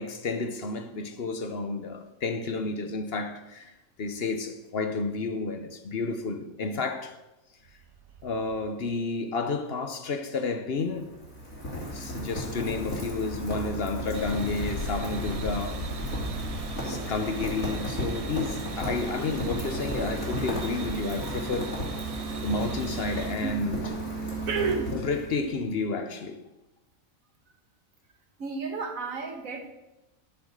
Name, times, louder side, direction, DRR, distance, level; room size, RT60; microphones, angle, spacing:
voice 1, 0.0-3.7 4.0-7.2 8.2-11.1 11.9-15.9 16.8-21.8 22.4-23.9 24.9-26.4, left 3 dB, 50° left, 1.0 m, -31 dB
Rain, 10.7-25.5, right 1 dB, 85° left, 3.5 m, -34 dB
sound 1, 14.1-23.3, right 5 dB, 60° right, 0.3 m, -41 dB
voice 2, 24.5-24.9 28.4-29.7, right 4 dB, 85° right, 1.9 m, -31 dB
11.0 x 7.2 x 6.5 m
omnidirectional pair, 1.4 m